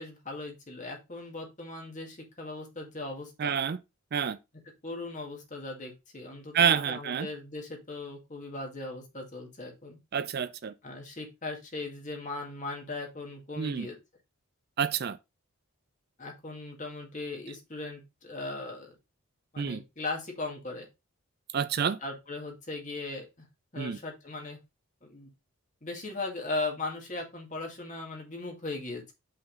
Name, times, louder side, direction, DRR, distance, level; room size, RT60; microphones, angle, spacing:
voice 1, 0.0-3.5 4.8-10.0 10.8-14.0 16.2-18.9 19.5-20.9 22.0-23.5 23.7-24.6 25.0-25.3 25.8-29.1, left 2 dB, 35° left, 1.9 m, -38 dB
voice 2, 3.4-3.8 4.1-4.4 6.5-7.3 10.1-10.7 13.6-13.9 14.8-15.2 19.6-19.8 21.5-22.0 23.8-24.0, right 7 dB, 45° right, 0.3 m, -28 dB
5.6 x 3.7 x 5.1 m
head